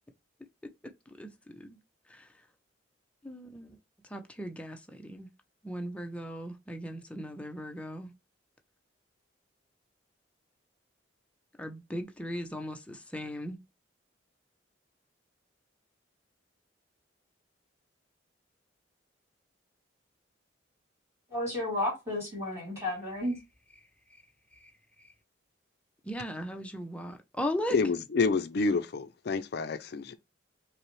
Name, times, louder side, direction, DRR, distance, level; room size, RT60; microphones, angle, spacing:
voice 1, 3.2-3.7 4.1-5.3 5.6-8.1 11.6-13.6 26.1-27.8, equal, 5° left, 0.5 m, -37 dB
voice 2, 21.3-23.3, left 1 dB, 15° right, 2.4 m, -32 dB
voice 3, 27.7-30.1, left 4 dB, 55° left, 0.4 m, -28 dB
5.5 x 2.1 x 3.0 m
head